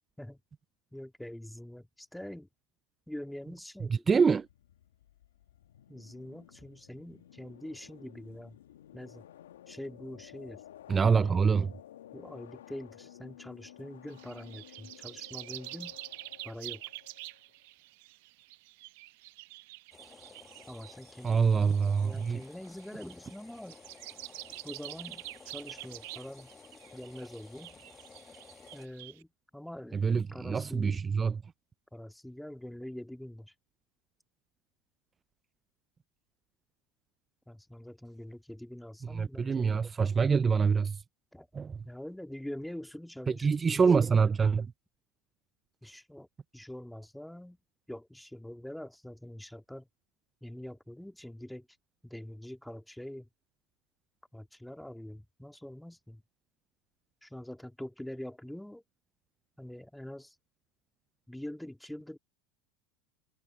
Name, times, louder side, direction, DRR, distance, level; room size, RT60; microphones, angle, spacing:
voice 1, 0.9-2.5 3.1-4.1 5.9-8.6 8.9-9.3 9.7-10.6 11.1-11.2 12.1-16.0 16.4-16.8 20.7-21.8 22.0-23.8 24.6-26.5 26.9-27.7 28.7-31.0 31.9-33.5 37.5-39.7 41.3-41.5 41.8-43.5 43.8-44.1 45.8-46.3 46.5-47.6 47.9-49.9 50.4-51.7 52.0-53.3 54.3-56.2 57.2-58.8 59.6-60.4 61.3-62.2, left 1 dB, 5° left, 2.0 m, -44 dB
voice 2, 4.1-4.5 10.9-11.7 21.2-22.4 29.9-31.4 39.1-41.0 41.5-41.8 43.4-44.7, right 5 dB, 25° right, 0.3 m, -25 dB
sound 1, 4.2-17.5, left 12 dB, 80° left, 1.4 m, -54 dB
sound 2, 14.1-29.2, right 22 dB, 65° right, 0.8 m, -47 dB
sound 3, 19.9-28.9, left 5 dB, 20° left, 1.4 m, -54 dB
hypercardioid pair, 90°, 0 cm